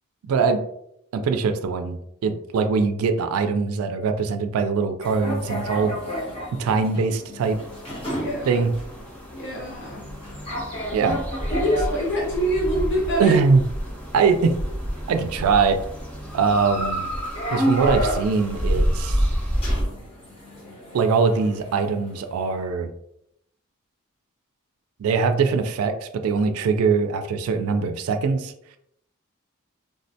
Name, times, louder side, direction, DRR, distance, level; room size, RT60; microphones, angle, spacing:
voice 1, 0.3-0.6 1.1-5.9 6.6-7.6 8.5-8.7 10.9-11.2 13.2-13.6 14.1-14.6 15.1-15.8 16.3-17.1 17.5-19.3 20.9-22.9 25.0-28.8, right 5 dB, 90° right, 7 dB, 0.3 m, -22 dB
sound 1, 5.0-22.5, equal, 30° left, 1.0 m, -33 dB
sound 2, 7.4-19.8, equal, 5° left, 0.6 m, -29 dB
voice 2, 8.1-8.7 9.3-10.0 11.5-13.4, right 1 dB, 55° left, -3 dB, 0.7 m, -25 dB
3.6 x 2.1 x 2.6 m, 0.75 s
head